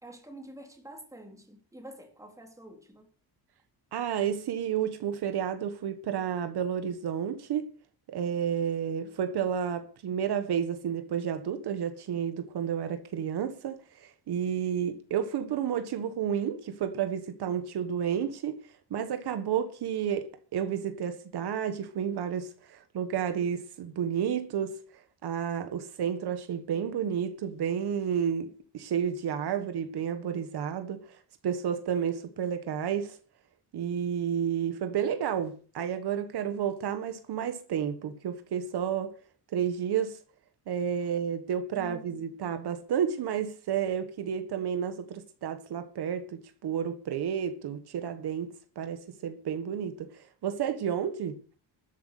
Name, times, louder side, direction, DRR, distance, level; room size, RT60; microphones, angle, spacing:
voice 1, 0.0-3.1 41.7-42.2, right 1 dB, 5° right, 3.2 m, -47 dB
voice 2, 3.9-7.7 8.1-18.6 18.9-20.3 20.5-33.2 33.7-39.1 39.5-40.2 40.7-51.4, right 8 dB, 65° right, 1.6 m, -31 dB
13.0 x 8.3 x 8.4 m
cardioid pair, 170°, 42 cm